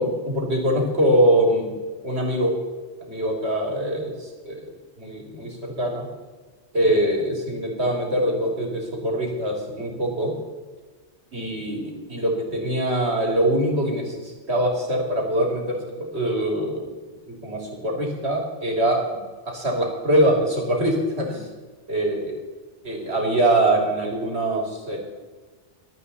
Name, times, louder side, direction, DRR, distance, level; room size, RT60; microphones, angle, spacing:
voice 1, 0.0-1.7 2.0-2.5 3.1-4.7 5.0-6.1 6.7-10.3 11.3-16.9 17.3-19.0 19.5-21.5 21.9-22.4 22.8-25.0, right 1 dB, 65° right, 0 dB, 3.5 m, -23 dB
24.0 x 8.8 x 4.2 m, 1.3 s
omnidirectional pair, 1.2 m